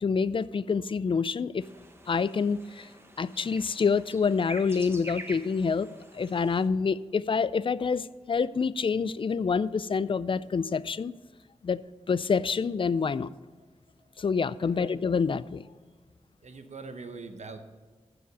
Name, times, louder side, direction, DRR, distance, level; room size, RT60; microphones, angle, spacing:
voice 1, 0.0-1.7 2.1-2.9 3.2-5.9 6.1-11.1 11.6-11.8 12.1-13.3 14.2-15.6, left 5 dB, 45° left, 18 dB, 0.3 m, -27 dB
sound 1, 1.6-6.7, right 1 dB, 20° right, 1.2 m, -46 dB
voice 2, 14.6-15.0 16.4-17.6, right 4 dB, 70° right, 7 dB, 0.9 m, -43 dB
15.0 x 5.0 x 6.2 m, 1.4 s
wide cardioid pair, 70°, 12 cm